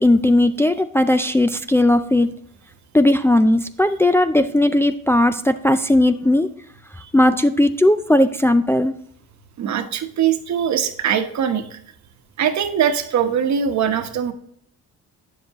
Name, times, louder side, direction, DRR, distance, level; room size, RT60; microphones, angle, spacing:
voice 1, 0.0-2.3 2.9-6.5 7.1-9.0, left 1 dB, 10° left, 8 dB, 0.4 m, -17 dB
voice 2, 9.6-11.8 12.4-14.3, right 8 dB, 65° right, 7 dB, 1.1 m, -21 dB
9.3 x 7.4 x 3.0 m, 0.65 s
cardioid pair, 90°, 30 cm